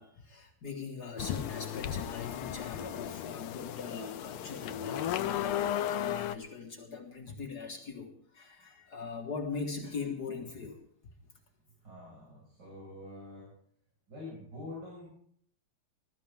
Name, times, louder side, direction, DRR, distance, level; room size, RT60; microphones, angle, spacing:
voice 1, 0.0-10.8, left 5 dB, 50° left, 2 dB, 2.0 m, -41 dB
sound 1, 1.2-6.4, left 11 dB, 85° left, 1.6 m, -35 dB
voice 2, 11.8-13.5 14.1-15.1, left 2 dB, 55° right, -4 dB, 6.1 m, -46 dB
21.0 x 13.0 x 3.5 m, 0.63 s
omnidirectional pair, 2.3 m